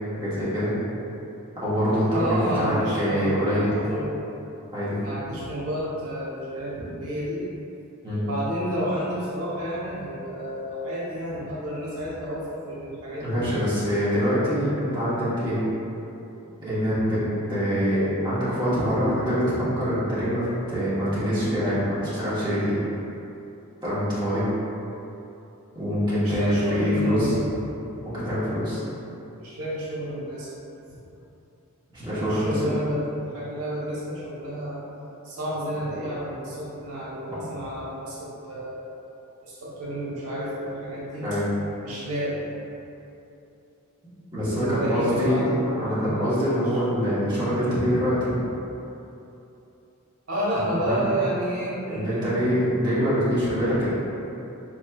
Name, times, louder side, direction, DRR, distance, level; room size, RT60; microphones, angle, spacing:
voice 1, 0.1-0.7 1.6-3.8 4.7-5.0 6.7-6.8 8.0-8.2 13.2-15.6 16.6-17.2 17.5-22.8 23.8-24.4 25.7-27.3 28.0-28.8 31.9-32.7 37.3-37.4 41.2-41.5 44.3-48.3 50.8-51.1 51.9-53.9, equal, 20° right, -12 dB, 1.0 m, -24 dB
voice 2, 2.1-4.1 5.0-7.4 8.2-13.4 26.2-27.5 29.4-30.5 32.1-34.8 35.2-38.8 39.4-41.2 41.8-42.4 44.5-46.5 50.3-52.3, right 1 dB, 85° right, -7 dB, 0.9 m, -30 dB
4.2 x 3.0 x 2.3 m, 2.9 s
head